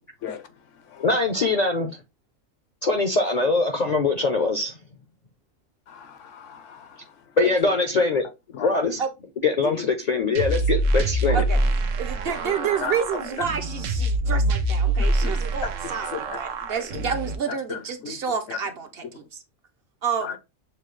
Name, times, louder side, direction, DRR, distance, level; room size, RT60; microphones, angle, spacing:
voice 1, 1.0-1.9 2.8-4.8 7.4-8.2 8.6-9.0 9.4-11.4, left 3 dB, 50° left, 0.5 m, -22 dB
voice 2, 5.9-6.9 8.5-8.7 9.7-9.8 12.8-12.9 15.0-15.4 16.1-16.4 17.7-17.8 18.0-18.2 18.5-18.6 20.2-20.3, left 7 dB, 75° left, 1.0 m, -34 dB
sound 1, 10.3-17.3, right 2 dB, 85° right, 1.1 m, -25 dB
voice 3, 12.0-19.2 20.0-20.3, right 7 dB, 60° right, 0.7 m, -29 dB
6.7 x 2.3 x 3.1 m
omnidirectional pair, 1.3 m